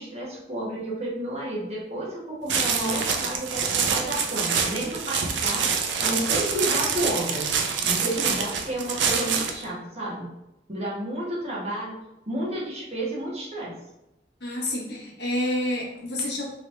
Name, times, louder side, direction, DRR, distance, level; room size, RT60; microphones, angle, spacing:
voice 1, 0.0-5.7 6.0-7.4 7.8-10.3 10.7-12.0 12.3-13.8, right 1 dB, 35° right, -6 dB, 1.0 m, -31 dB
sound 1, 2.5-9.6, right 6 dB, 75° right, 0.4 m, -26 dB
voice 2, 14.4-16.5, left 1 dB, 60° left, -3 dB, 0.9 m, -28 dB
3.1 x 2.8 x 3.1 m, 0.92 s
head